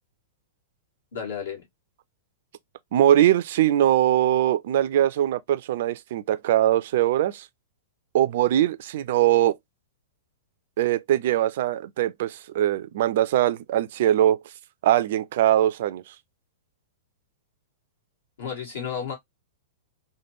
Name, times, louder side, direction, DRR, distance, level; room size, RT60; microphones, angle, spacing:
voice 1, 1.1-1.6 18.4-19.1, left 7 dB, 60° left, 1.5 m, -32 dB
voice 2, 2.9-7.5 8.1-9.5 10.8-14.4 14.8-16.1, right 12 dB, 55° right, 0.3 m, -21 dB
3.3 x 2.2 x 2.9 m
figure-of-eight pair, 100°, 0 cm